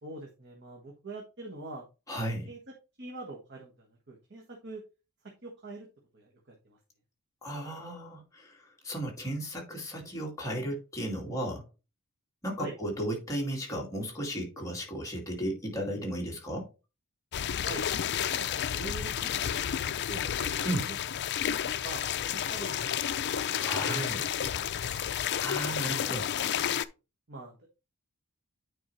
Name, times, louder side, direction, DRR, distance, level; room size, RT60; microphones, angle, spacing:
voice 1, 0.0-1.8 2.2-2.6 3.0-4.8 5.4-5.9 6.1-6.3 6.6-6.8 12.6-12.7 17.6-17.9 18.3-21.0 21.5-22.0 22.3-22.9 23.2-23.3 23.7-24.1 24.4-24.6 25.7-26.6 27.3-27.6, right 2 dB, 50° right, 1.4 m, -44 dB
voice 2, 2.1-2.5 7.4-11.6 12.4-16.7 20.6-20.8 23.5-24.3 25.4-26.2, right 1 dB, 15° left, 2.3 m, -35 dB
sound 1, 17.3-26.8, left 9 dB, 50° left, 0.4 m, -31 dB
9.1 x 4.7 x 3.2 m
head